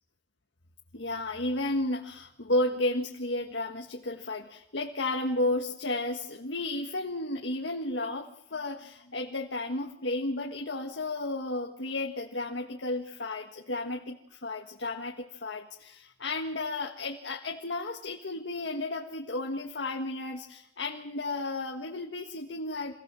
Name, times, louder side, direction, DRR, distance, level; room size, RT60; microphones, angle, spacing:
voice 1, 0.9-22.9, left 2 dB, 85° left, 2 dB, 1.6 m, -33 dB
25.5 x 17.5 x 7.6 m, 0.79 s
head